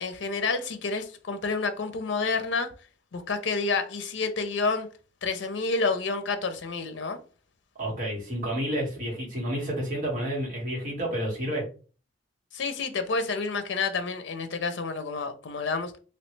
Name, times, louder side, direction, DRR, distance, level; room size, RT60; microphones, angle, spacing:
voice 1, 0.0-2.7 3.1-4.9 5.2-7.2 12.5-15.9, left 4 dB, 75° left, 0.5 m, -29 dB
voice 2, 7.8-11.6, equal, 45° right, 1.7 m, -30 dB
3.1 x 2.8 x 3.1 m
head